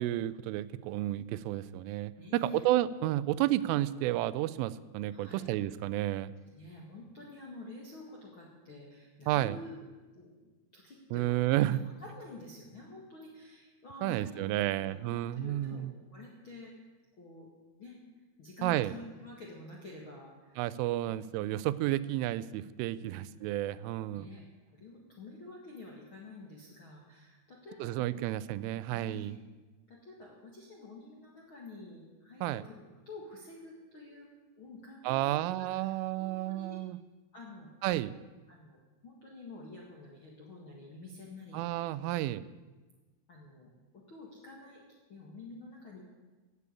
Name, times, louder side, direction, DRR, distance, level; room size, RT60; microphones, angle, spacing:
voice 1, 0.0-6.3 9.3-9.6 11.1-11.8 14.0-15.9 18.6-18.9 20.6-24.3 27.8-29.4 32.4-32.6 35.0-37.0 37.8-38.2 41.5-42.4, right 15 dB, 90° right, 16 dB, 3.1 m, -31 dB
voice 2, 2.2-2.6 5.1-5.4 6.5-10.4 10.7-11.4 11.7-16.7 17.2-17.5 17.8-18.0 18.4-20.6 21.0-21.1 23.0-23.3 24.1-24.4 24.7-28.1 28.5-29.3 29.9-34.3 34.6-36.8 37.3-37.7 38.5-38.8 39.0-41.9 43.3-44.8 45.1-46.0, left 2 dB, 55° left, -3 dB, 1.3 m, -49 dB
16.5 x 8.5 x 8.4 m, 1.3 s
omnidirectional pair, 5.6 m